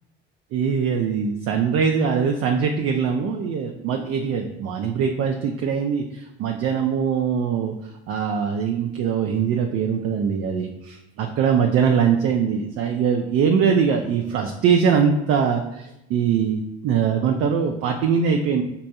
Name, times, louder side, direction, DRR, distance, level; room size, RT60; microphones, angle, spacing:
voice 1, 0.5-7.7 8.1-18.6, right 6 dB, 45° right, 4 dB, 0.4 m, -22 dB
5.3 x 2.1 x 2.8 m, 0.89 s
hypercardioid pair, 60°, 33 cm